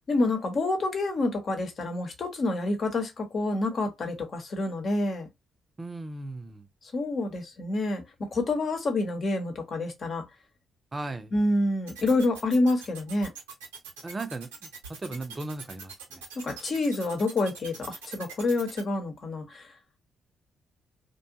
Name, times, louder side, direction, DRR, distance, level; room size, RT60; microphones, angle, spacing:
voice 1, 0.1-5.3 6.9-10.3 11.3-13.3 16.4-19.7, left 2 dB, 50° left, 1.0 m, -28 dB
voice 2, 5.8-6.7 10.9-11.3 14.0-14.7 15.0-16.2, right 2 dB, 30° right, 0.6 m, -37 dB
sound 1, 11.9-18.8, right 5 dB, 85° right, 0.8 m, -42 dB
2.6 x 2.2 x 2.7 m
hypercardioid pair, 45°, 0 cm